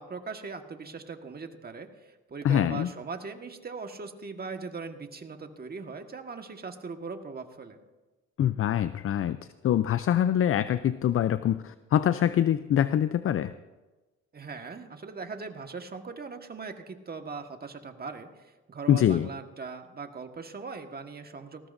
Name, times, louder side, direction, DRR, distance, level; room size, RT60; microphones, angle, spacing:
voice 1, 0.0-7.8 14.3-18.3 18.7-21.7, right 4 dB, 30° right, 5 dB, 1.5 m, -40 dB
voice 2, 2.4-2.9 8.4-9.4 9.6-13.5 18.9-19.3, left 10 dB, 45° left, 13 dB, 0.5 m, -24 dB
20.0 x 16.0 x 2.6 m, 1.2 s
cardioid pair, 90°, 30 cm